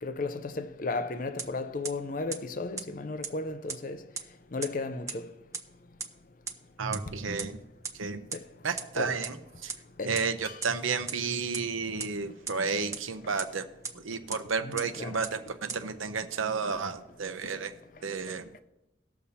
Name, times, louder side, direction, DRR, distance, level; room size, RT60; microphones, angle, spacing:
voice 1, 0.0-4.0 4.5-5.3 8.3-8.4 8.9-9.2 10.0-10.1 10.5-10.6 14.6-15.2, left 3 dB, 45° left, 0.5 m, -34 dB
sound 1, 1.4-1.5 1.8-1.9 2.3-2.4 2.8-2.9 3.2-3.3 3.7-3.8 4.2-4.3 4.6-4.7 5.1-5.2 5.5-5.6 6.0-6.1 6.5-6.6 6.9-7.0 7.4-7.5 7.8-7.9 8.3-8.4 8.8-8.9 9.2-9.3 9.7-9.8 10.2-10.3 10.6-10.7 11.1-11.2 11.5-11.6 12.0-12.1 12.5-12.6 12.9-13.0 13.4-13.5 13.8-13.9 14.3-14.4 14.8-14.9 15.2-15.3 15.7-15.8, right 5 dB, 15° right, 0.6 m, -34 dB
voice 2, 6.8-7.6 8.0-8.2 8.6-9.4 9.6-9.7 10.0-13.6 14.0-17.7 18.0-18.5, right 5 dB, 90° right, 0.8 m, -32 dB
19.0 x 6.8 x 2.8 m
head